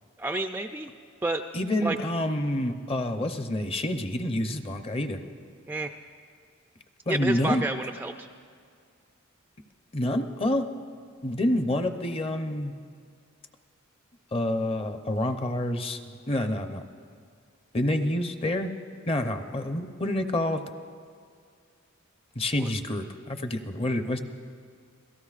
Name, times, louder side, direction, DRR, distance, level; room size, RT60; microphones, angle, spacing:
voice 1, 0.2-0.9 1.2-1.4 1.8-2.0 5.7-5.9 7.1-8.3 22.6-22.7, right 2 dB, 10° right, 5 dB, 0.3 m, -30 dB
voice 2, 1.5-5.2 7.1-7.6 9.9-10.7 11.2-12.8 14.3-16.0 16.3-16.8 17.7-18.7 19.1-20.6 22.4-24.2, left 1 dB, 30° left, 7 dB, 0.7 m, -28 dB
27.5 x 17.5 x 2.5 m, 2.2 s
head